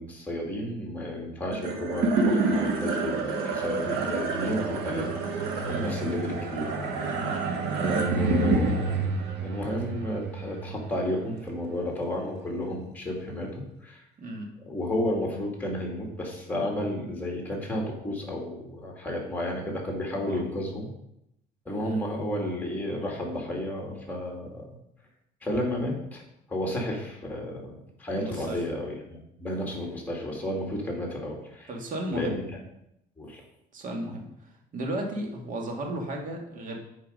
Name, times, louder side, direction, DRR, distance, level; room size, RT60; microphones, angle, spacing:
voice 1, 0.0-7.2 7.7-9.1 9.4-14.0 14.6-20.9 21.6-24.6 25.4-26.2 26.5-31.7 32.1-32.4 33.2-33.4, left 1 dB, 10° left, -1 dB, 2.7 m, -32 dB
sound 1, 1.5-12.0, right 3 dB, 85° right, 1.6 m, -28 dB
voice 2, 28.1-28.6 31.7-32.4 33.7-36.8, right 1 dB, 50° right, 1 dB, 2.0 m, -35 dB
8.9 x 4.8 x 5.3 m, 0.81 s
cardioid pair, 110°, 17 cm